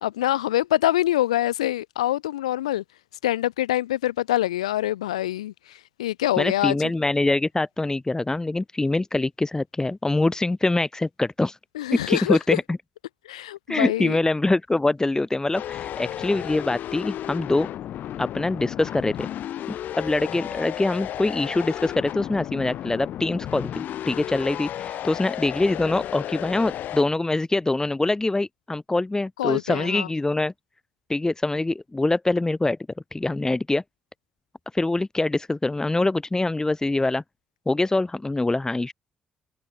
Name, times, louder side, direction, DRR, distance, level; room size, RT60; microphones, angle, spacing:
voice 1, 0.0-2.8 3.2-6.8 11.7-12.6 13.2-14.2 29.4-30.1, left 14 dB, 80° left, 1.0 m, -25 dB
voice 2, 6.4-11.6 12.1-12.8 13.7-17.7 18.2-19.3 19.7-30.5 31.1-32.8 33.1-33.8 34.7-37.2 37.7-38.9, left 2 dB, 20° left, 2.1 m, -24 dB
sound 1, 15.5-27.0, left 12 dB, 60° left, 1.8 m, -33 dB
figure-of-eight pair, 40°, 3 cm